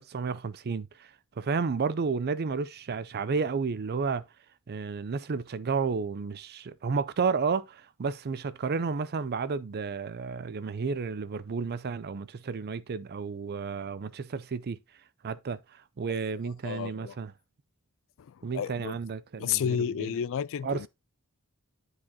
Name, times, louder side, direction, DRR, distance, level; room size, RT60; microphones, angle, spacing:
voice 1, 0.0-4.2 4.7-14.8 15.2-17.3 18.4-20.1 20.6-20.9, right 5 dB, 45° right, 0.5 m, -32 dB
voice 2, 16.6-17.2 18.2-19.0 19.4-20.9, left 8 dB, 60° left, 0.3 m, -32 dB
9.7 x 4.8 x 2.7 m
head